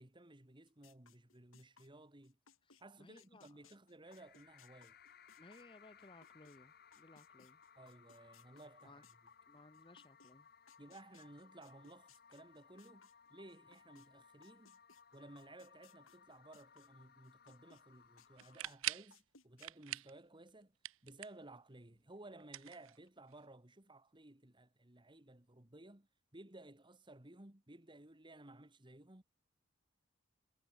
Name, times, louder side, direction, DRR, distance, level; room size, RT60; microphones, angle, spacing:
voice 1, 0.0-2.4 2.8-5.0 7.8-9.1 10.8-14.8 15.1-20.7 21.0-29.2, right 2 dB, 25° right, 1.8 m, -57 dB
sound 1, 0.7-6.6 6.9-14.1 14.4-17.8 18.2-19.7, left 6 dB, 75° left, 5.7 m, -66 dB
voice 2, 2.6-3.6 5.4-7.6 8.8-9.1 9.5-10.5, left 2 dB, 25° left, 1.3 m, -61 dB
sound 2, 4.0-18.6, left 6 dB, 50° left, 2.7 m, -64 dB
sound 3, 18.4-19.1 19.6-20.2 20.5-21.5 22.4-23.3, right 15 dB, 70° right, 0.5 m, -43 dB
head